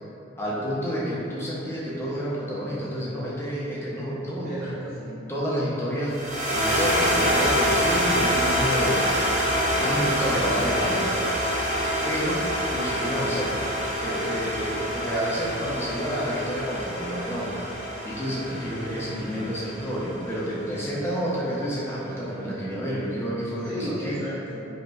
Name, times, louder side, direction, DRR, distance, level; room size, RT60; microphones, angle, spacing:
voice 1, 0.4-4.6 5.3-6.2 6.5-11.3 12.0-12.4 12.7-13.5 14.0-17.5 18.0-24.2, equal, 10° left, -7 dB, 0.5 m, -29 dB
voice 2, 4.4-5.2 18.9-19.5 19.9-20.0 23.0-23.1 23.6-24.6, equal, 80° right, -11 dB, 1.3 m, -34 dB
sound 1, 6.1-20.5, equal, 40° right, 0.7 m, -26 dB
4.8 x 2.1 x 2.3 m, 2.8 s
head